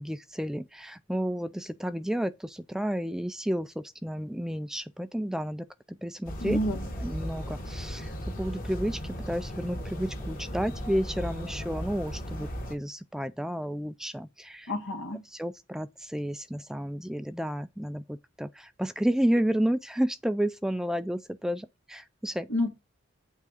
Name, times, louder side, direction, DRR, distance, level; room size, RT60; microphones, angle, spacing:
voice 1, 0.0-5.6 6.0-6.6 7.0-8.1 8.4-14.7 15.3-22.5, equal, 5° right, 0.3 m, -31 dB
sound 1, 6.3-12.8, equal, 45° left, 1.8 m, -36 dB
voice 2, 6.4-6.9 14.7-15.2 22.5-22.7, left 1 dB, 80° left, 2.0 m, -29 dB
8.3 x 3.6 x 6.3 m
head